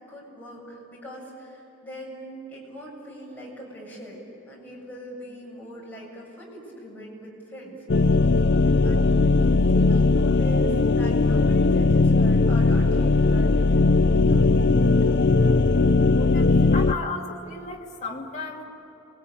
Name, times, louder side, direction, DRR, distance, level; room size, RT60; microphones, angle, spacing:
voice 1, 0.1-7.8 8.8-15.2, right 1 dB, 10° left, -4 dB, 7.3 m, -41 dB
sound 1, 7.9-16.9, left 3 dB, 55° left, 0.6 m, -19 dB
voice 2, 16.1-18.6, left 3 dB, 35° left, -1 dB, 2.6 m, -34 dB
28.0 x 22.5 x 8.5 m, 3.0 s
head